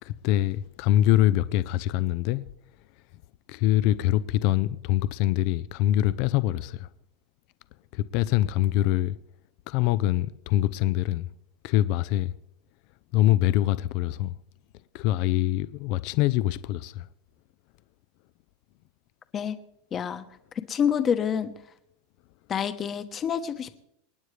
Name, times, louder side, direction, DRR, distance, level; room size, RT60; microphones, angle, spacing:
voice 1, 0.0-2.4 3.5-6.9 7.9-9.2 9.7-11.3 11.6-12.3 13.1-14.3 14.9-17.1, left 14 dB, 55° left, 0.5 m, -24 dB
voice 2, 19.9-20.2 20.7-21.5 22.5-23.7, left 8 dB, 25° left, 1.1 m, -27 dB
27.5 x 9.5 x 3.3 m
supercardioid pair, 140°, 0 cm